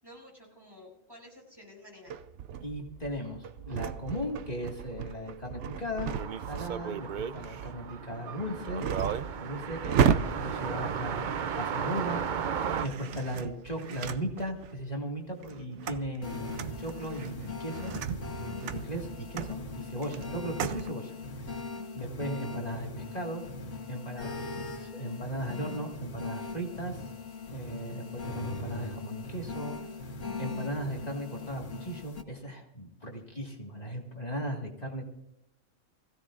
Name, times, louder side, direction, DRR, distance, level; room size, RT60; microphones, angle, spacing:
voice 1, 0.0-2.2, left 1 dB, 20° right, -2 dB, 6.8 m, -52 dB
sound 1, 2.1-11.9 12.6-14.8 15.2-20.9, right 8 dB, 70° right, 1.0 m, -34 dB
voice 2, 2.6-6.1 6.5-8.8 9.4-10.1 10.4-18.0 18.4-21.7 21.9-23.4 23.9-27.0 27.5-29.8 30.4-35.0, equal, 30° left, 0 dB, 2.1 m, -37 dB
sound 2, 6.1-12.9, right 7 dB, 50° right, 0.6 m, -34 dB
sound 3, 16.2-32.2, left 3 dB, 70° left, 1.5 m, -40 dB
24.0 x 16.0 x 2.5 m, 0.78 s
omnidirectional pair, 1.3 m